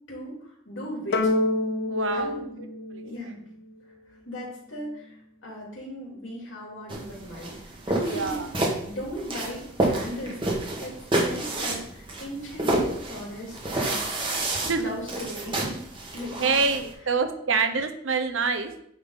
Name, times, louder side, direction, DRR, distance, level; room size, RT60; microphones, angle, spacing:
voice 1, 0.1-1.3 2.1-2.4 3.0-3.4 4.2-5.2 5.4-8.4 8.8-10.4 10.8-14.1 14.8-15.8 16.1-16.6 17.4-17.5, equal, 85° left, -3 dB, 2.8 m, -37 dB
sound 1, 1.1-3.7, left 2 dB, 55° left, 0.5 m, -27 dB
voice 2, 1.9-2.4 2.9-3.0 8.0-8.5 14.5-14.9 16.4-18.7, right 4 dB, 85° right, 7 dB, 0.8 m, -26 dB
sound 2, 6.9-16.9, right 2 dB, 25° right, 1.4 m, -29 dB
8.9 x 3.7 x 4.0 m, 0.71 s
head